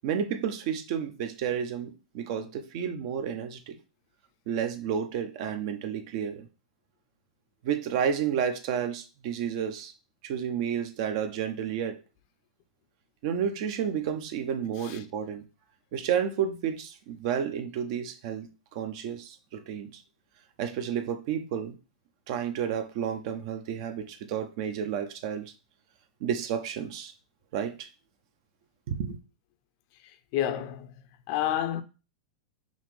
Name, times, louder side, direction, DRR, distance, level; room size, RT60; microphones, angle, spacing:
voice 1, 0.0-3.8 4.5-6.5 7.6-9.9 10.2-12.0 13.2-15.4 15.9-18.5 18.7-20.0 20.6-21.8 22.3-25.5 26.2-27.1 27.5-27.9 28.9-29.2, right 8 dB, 55° right, 0.7 m, -31 dB
voice 2, 30.3-30.9 31.3-31.8, left 11 dB, 50° left, 0.5 m, -29 dB
5.5 x 2.5 x 3.2 m
hypercardioid pair, 120°, 4 cm